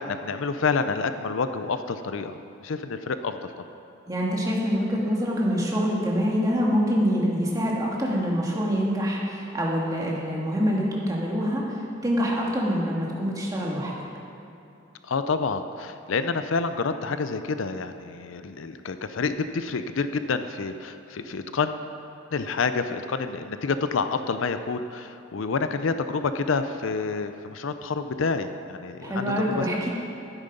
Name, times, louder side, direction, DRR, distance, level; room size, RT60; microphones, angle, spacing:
voice 1, 0.0-3.5 15.0-21.8 22.3-29.6, left 4 dB, 75° left, 10 dB, 0.5 m, -28 dB
voice 2, 4.1-13.9 29.0-29.9, equal, 15° right, -3 dB, 1.8 m, -25 dB
12.0 x 9.8 x 5.2 m, 2.8 s
head